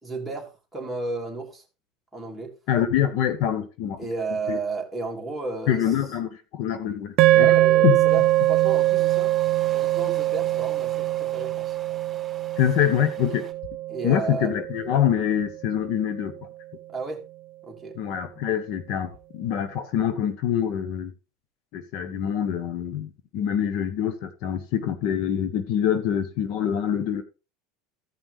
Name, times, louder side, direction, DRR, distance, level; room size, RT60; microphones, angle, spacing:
voice 1, 0.0-1.6 2.1-2.5 4.0-6.0 7.3-9.3 9.7-11.8 13.9-14.5 16.9-17.3 17.6-18.0, right 3 dB, ahead, 2.9 m, -33 dB
voice 2, 2.7-4.0 4.5-4.6 5.7-7.5 7.8-8.0 12.6-13.4 14.0-16.3 17.9-21.1 21.7-27.2, left 9 dB, 60° left, 1.1 m, -25 dB
sound 1, 7.2-15.6, right 15 dB, 55° right, 0.5 m, -22 dB
sound 2, 8.1-13.5, right 5 dB, 20° right, 3.4 m, -46 dB
15.5 x 5.6 x 3.3 m
supercardioid pair, 130°, 0 cm